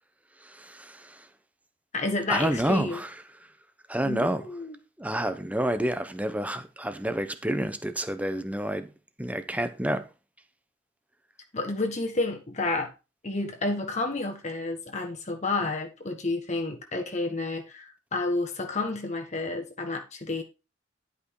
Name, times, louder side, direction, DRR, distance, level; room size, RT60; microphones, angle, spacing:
voice 1, 0.4-1.2 2.3-3.1 3.9-4.4 5.0-8.9 9.2-10.0, right 1 dB, 5° right, 0.9 m, -29 dB
voice 2, 1.9-3.0 4.0-4.7 11.5-12.9 13.2-20.4, left 2 dB, 35° left, 1.5 m, -30 dB
11.0 x 5.4 x 4.8 m
head